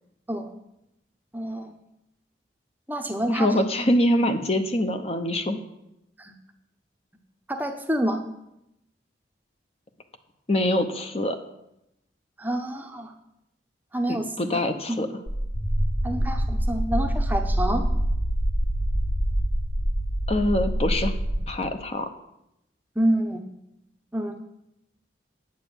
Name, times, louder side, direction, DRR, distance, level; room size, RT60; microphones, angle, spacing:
voice 1, 1.3-1.7 2.9-3.6 6.2-6.3 7.5-8.2 12.4-13.1 13.9-14.6 14.9-15.0 16.0-17.9 23.0-23.4 24.1-24.4, right 1 dB, 10° right, 5 dB, 0.7 m, -27 dB
voice 2, 3.3-5.6 10.5-11.4 14.1-15.1 20.3-21.1 21.5-22.1, left 1 dB, 35° left, 7 dB, 0.8 m, -24 dB
sound 1, 15.3-21.4, equal, 50° left, 3.6 m, -25 dB
9.1 x 8.1 x 6.9 m, 0.85 s
head